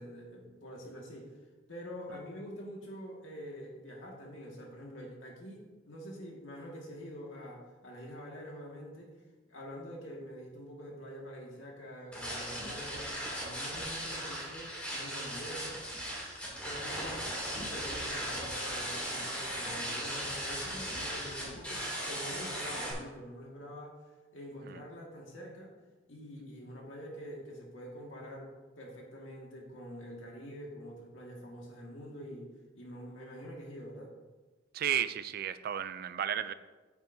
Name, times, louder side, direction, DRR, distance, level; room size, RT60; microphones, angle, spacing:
voice 1, 0.0-1.4 1.7-9.1 9.5-15.8 16.6-24.0 24.3-25.7 26.1-32.5 32.7-34.1, equal, 85° left, -1 dB, 1.8 m, -46 dB
sound 1, 12.1-22.9, equal, 5° left, 2.6 m, -38 dB
voice 2, 34.7-36.5, right 10 dB, 50° right, 13 dB, 0.4 m, -33 dB
9.2 x 8.0 x 2.7 m, 1.3 s
head